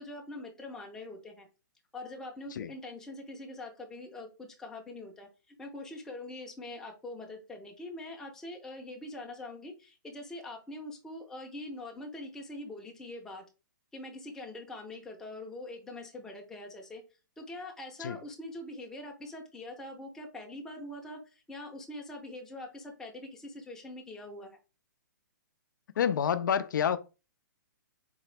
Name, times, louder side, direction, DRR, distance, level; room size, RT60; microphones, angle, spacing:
voice 1, 0.0-1.5 1.9-13.4 13.9-17.0 17.4-24.6, left 2 dB, 5° left, 0.6 m, -43 dB
voice 2, 26.0-27.0, left 8 dB, 70° left, 0.4 m, -28 dB
3.9 x 2.9 x 3.2 m
hypercardioid pair, 155°, 11 cm